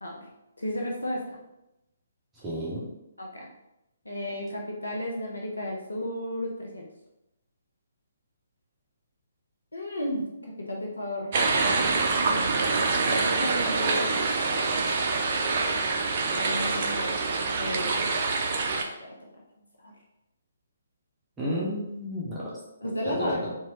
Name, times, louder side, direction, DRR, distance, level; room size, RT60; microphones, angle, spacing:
voice 1, 0.6-1.4 3.2-3.5 4.1-6.9 9.7-11.4 12.2-14.1 16.3-17.2 17.6-18.5 19.0-19.2 19.8-19.9 22.8-23.4, left 1 dB, 80° left, 0 dB, 0.5 m, -34 dB
voice 2, 2.4-2.8 21.4-22.5 23.1-23.5, equal, 10° right, -8 dB, 0.7 m, -31 dB
sound 1, 11.3-18.8, right 4 dB, 40° right, 0.4 m, -26 dB
2.9 x 2.3 x 2.9 m, 0.89 s
figure-of-eight pair, 135°, 0 cm